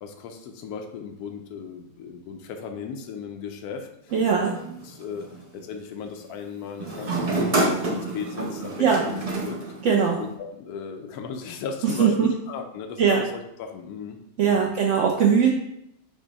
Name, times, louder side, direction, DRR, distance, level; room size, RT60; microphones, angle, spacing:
voice 1, 0.0-4.5 4.8-5.3 5.5-9.6 10.2-14.2 14.5-14.7, left 6 dB, 85° left, 5 dB, 1.1 m, -36 dB
sound 1, 4.1-5.4 6.8-10.3, right 2 dB, 45° right, 0.4 m, -28 dB
voice 2, 4.1-4.5 8.8-9.0 9.8-10.2 12.0-12.3 13.0-13.2 14.4-15.5, right 6 dB, 65° right, -1 dB, 0.8 m, -20 dB
6.1 x 2.1 x 4.0 m, 0.78 s
omnidirectional pair, 1.6 m